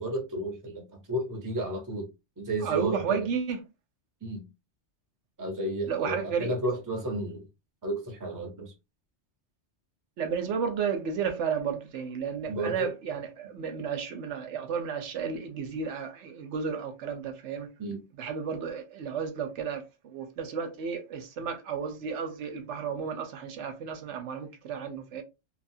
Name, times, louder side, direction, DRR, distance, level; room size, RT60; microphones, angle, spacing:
voice 1, 0.0-2.1 2.4-3.3 4.2-4.4 5.4-7.5 7.8-8.7 12.5-12.9 17.8-18.0, right 1 dB, 20° right, 0.7 m, -32 dB
voice 2, 2.6-3.6 5.9-6.5 10.2-17.7 18.2-25.2, right 6 dB, 85° right, 1.0 m, -32 dB
2.9 x 2.3 x 2.6 m
omnidirectional pair, 1.2 m